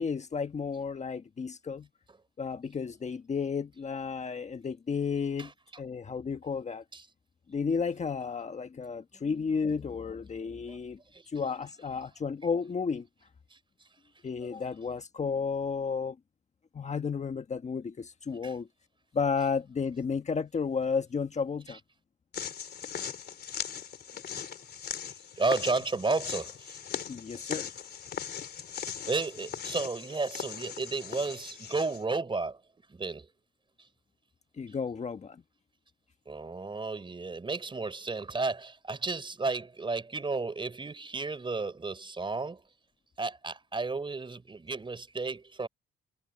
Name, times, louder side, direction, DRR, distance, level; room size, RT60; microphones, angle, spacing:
voice 1, 0.0-1.9 2.4-5.5 5.8-6.8 7.5-11.0 11.3-13.1 14.2-16.2 16.7-18.7 19.1-21.8 27.1-27.7 34.6-35.4, left 5 dB, 35° left, 1.4 m, -32 dB
sound 1, 22.3-32.0, left 8 dB, 55° left, 3.5 m, -39 dB
voice 2, 25.4-26.8 29.1-32.6 32.9-33.3 36.3-42.6 43.2-45.7, right 3 dB, 25° right, 4.1 m, -33 dB
cardioid pair, 90°, 20 cm